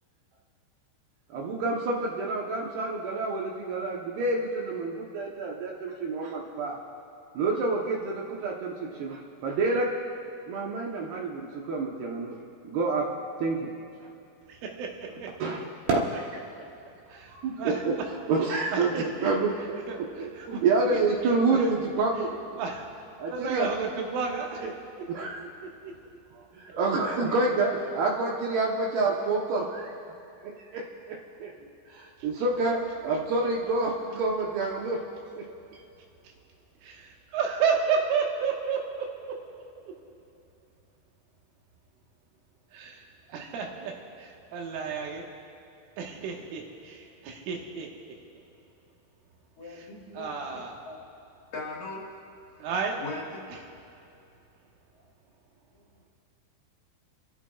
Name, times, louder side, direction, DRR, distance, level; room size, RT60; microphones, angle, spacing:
voice 1, 1.3-6.8 7.3-9.9 10.5-12.4 12.6-13.1 13.4-13.7 15.4-16.4 17.3-18.0 18.3-19.8 20.2-22.3 23.2-23.7 24.6-24.7 25.1-25.5 26.6-29.9 30.7-30.8 31.4-31.5 31.9-35.0 35.4-35.5, right 3 dB, 70° right, -2 dB, 2.6 m, -28 dB
voice 2, 14.5-15.3 17.1-18.0 18.7-19.3 19.9-20.6 21.5-21.7 22.6-22.8 23.3-24.6 25.4-25.9 36.8-39.1 42.7-43.0 43.3-43.9 44.2-45.3 46.0-47.9 50.2-50.8 52.6-53.0, right 5 dB, 85° right, 0 dB, 3.9 m, -32 dB
voice 3, 49.6-50.3 50.8-51.0 51.5-52.0 53.0-53.5, left 3 dB, 60° left, -3 dB, 2.7 m, -38 dB
27.5 x 14.0 x 2.4 m, 2.7 s
omnidirectional pair, 5.5 m